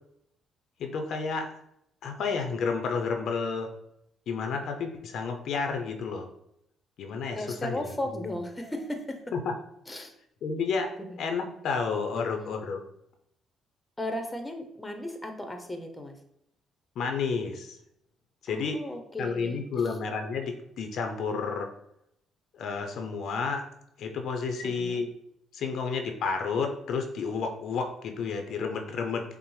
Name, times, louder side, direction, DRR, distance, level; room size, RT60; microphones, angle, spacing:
voice 1, 0.8-1.5 2.0-3.7 4.3-6.3 7.0-8.3 9.3-9.5 9.9-10.0 10.4-10.9 11.2-12.8 17.0-17.8 18.4-18.8 19.2-21.7 22.5-23.7 24.0-25.1 25.5-29.2, left 5 dB, 70° left, 4 dB, 0.5 m, -31 dB
voice 2, 7.3-9.2 9.9-10.1 11.0-11.2 12.1-12.5 14.0-16.2 18.5-19.9 24.6-25.1, left 1 dB, 15° left, 5 dB, 0.7 m, -36 dB
5.8 x 2.0 x 3.1 m, 0.76 s
cardioid pair, 80°, 0 cm